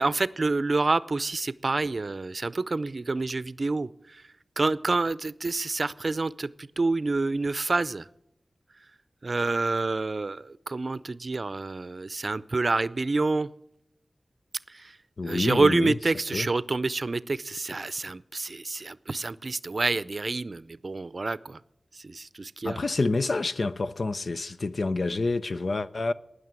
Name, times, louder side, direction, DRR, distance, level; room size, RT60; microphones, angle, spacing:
voice 1, 0.0-4.2 4.6-8.1 9.2-13.5 14.7-15.0 15.2-21.6 21.9-22.8, right 3 dB, 55° right, 0.5 m, -28 dB
voice 2, 15.2-16.0 16.3-16.5 22.6-26.1, left 3 dB, 65° left, 0.6 m, -28 dB
18.5 x 6.5 x 8.9 m
cardioid pair, 45°, 0 cm